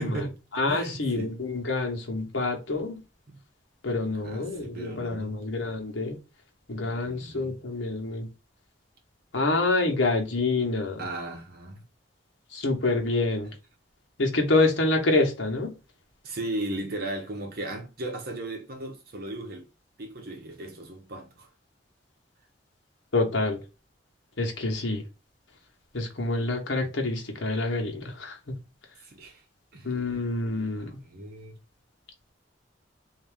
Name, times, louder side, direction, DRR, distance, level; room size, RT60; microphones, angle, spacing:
voice 1, 0.0-0.3 0.7-1.4 3.3-3.4 4.2-5.4 6.8-7.6 11.0-11.8 16.2-19.7 20.0-21.5 29.0-29.4 29.7-29.9 30.8-31.6, right 2 dB, 55° right, 1.1 m, -36 dB
voice 2, 0.5-3.0 3.8-6.2 6.7-8.3 9.3-11.0 12.5-13.5 14.2-15.7 23.1-23.6 24.4-25.0 25.9-28.4 29.8-30.9, left 2 dB, 85° left, 1.2 m, -27 dB
3.7 x 2.8 x 3.5 m
head